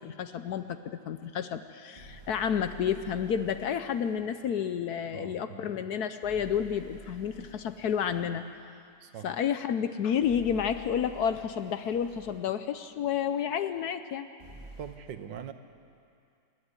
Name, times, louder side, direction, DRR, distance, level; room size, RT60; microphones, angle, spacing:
voice 1, 0.0-8.4 9.2-14.3, left 8 dB, 65° left, 10 dB, 1.2 m, -30 dB
sound 1, 2.0-4.2 6.2-8.3 10.2-12.4 14.4-14.9, right 2 dB, 30° right, 3.3 m, -50 dB
voice 2, 5.1-5.6 9.0-9.3 14.8-15.5, right 8 dB, 90° right, 9 dB, 1.7 m, -42 dB
27.0 x 11.0 x 9.8 m, 2.4 s
omnidirectional pair, 1.9 m